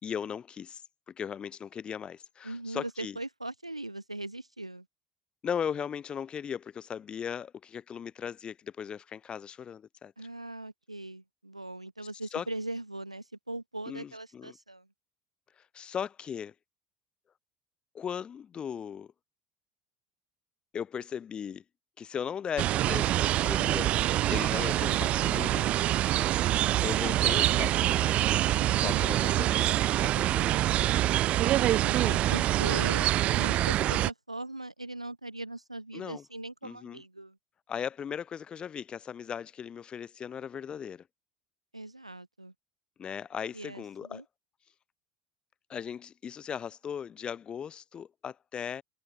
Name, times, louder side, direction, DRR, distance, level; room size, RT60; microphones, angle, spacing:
voice 1, 0.0-3.2 5.4-10.1 12.3-12.4 13.9-14.6 15.6-16.5 17.9-19.1 20.7-21.6 22.0-23.9 24.3-25.7 26.8-28.3 28.7-30.8 35.9-36.2 36.6-37.0 37.7-41.0 43.0-44.2 45.7-48.8, left 8 dB, 30° left, 2.4 m, -38 dB
voice 2, 2.4-4.9 10.2-14.9 31.8-33.1 33.3-37.4 41.7-42.5 43.5-44.2, right 2 dB, 90° right, 1.0 m, -40 dB
sound 1, 22.6-34.1, right 14 dB, 40° right, 0.3 m, -25 dB
figure-of-eight pair, 70°, 3 cm